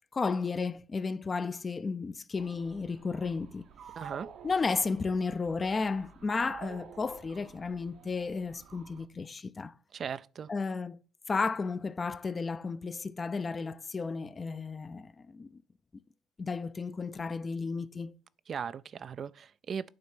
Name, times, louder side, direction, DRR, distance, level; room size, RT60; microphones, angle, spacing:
voice 1, 0.1-3.6 4.4-9.7 10.5-11.0 11.3-15.6 16.4-18.1, left 4 dB, 35° left, 0.5 m, -33 dB
sound 1, 2.4-9.1, right 7 dB, 65° right, 0.9 m, -50 dB
voice 2, 4.0-4.3 9.9-10.5 18.5-19.9, right 7 dB, 50° right, 0.4 m, -38 dB
8.6 x 3.2 x 6.0 m
supercardioid pair, 70°, 0 cm